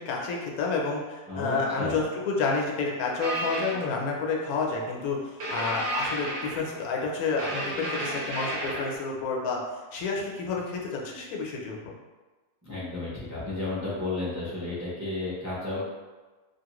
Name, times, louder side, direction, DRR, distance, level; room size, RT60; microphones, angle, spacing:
voice 1, 0.0-9.6 9.9-11.9, left 4 dB, 90° left, -1 dB, 1.1 m, -30 dB
voice 2, 1.3-2.0 12.6-15.8, left 2 dB, 25° right, -8 dB, 0.4 m, -32 dB
sound 1, 3.2-3.8 5.4-6.9 7.4-9.0, right 1 dB, 60° right, 0.7 m, -32 dB
2.8 x 2.4 x 2.9 m, 1.3 s
omnidirectional pair, 1.5 m